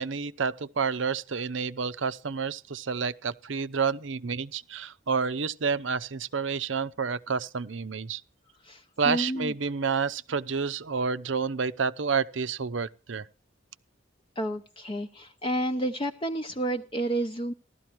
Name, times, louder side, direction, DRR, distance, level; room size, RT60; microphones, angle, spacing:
voice 1, 0.0-8.2 9.0-13.3, right 5 dB, 80° right, 0.7 m, -29 dB
voice 2, 8.6-9.5 14.4-17.5, right 1 dB, 25° left, 0.7 m, -30 dB
15.5 x 12.5 x 4.6 m
head